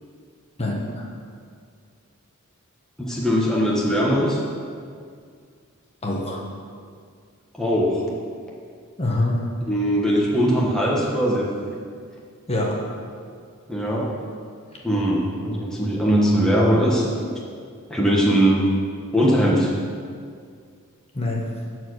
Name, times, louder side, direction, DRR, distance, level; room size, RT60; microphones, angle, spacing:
voice 1, 0.6-1.1 6.0-6.4 9.0-9.5 12.5-12.8 21.1-21.5, left 1 dB, 30° left, -2 dB, 1.3 m, -25 dB
voice 2, 3.0-4.4 7.6-8.0 9.7-11.5 13.7-14.1 14.8-17.3 17.9-18.6 19.1-19.7, equal, 5° left, -5 dB, 1.3 m, -20 dB
14.0 x 4.7 x 6.4 m, 2.2 s
head